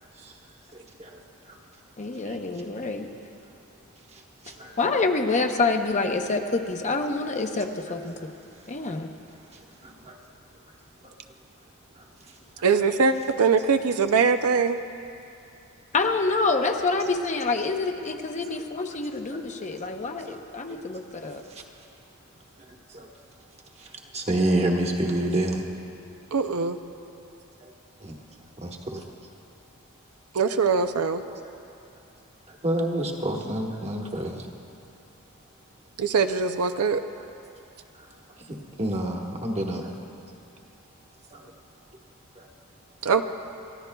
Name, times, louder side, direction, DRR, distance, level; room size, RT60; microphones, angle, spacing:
voice 1, 0.7-1.2 1.5-1.6 2.2-2.4 4.1-4.8 9.5-10.2 11.0-11.1 12.0-12.1 13.3-13.4 20.3-20.4 20.7-20.8 21.5-21.6 22.6-23.1 23.8-25.6 27.6-27.7 28.0-28.2 28.6-29.1 31.3-31.4 32.5-34.5 38.5-39.9 41.3-41.5 42.4-42.5, right 1 dB, 30° right, 1 dB, 1.3 m, -29 dB
voice 2, 2.0-3.1 4.8-8.1 8.7-9.1 15.9-21.4, left 3 dB, 35° left, 4 dB, 0.7 m, -27 dB
voice 3, 12.6-14.8 26.3-26.8 30.3-31.2 36.0-37.0 43.0-43.2, right 5 dB, 75° right, 8 dB, 0.5 m, -22 dB
29.0 x 14.5 x 2.3 m, 2.7 s
head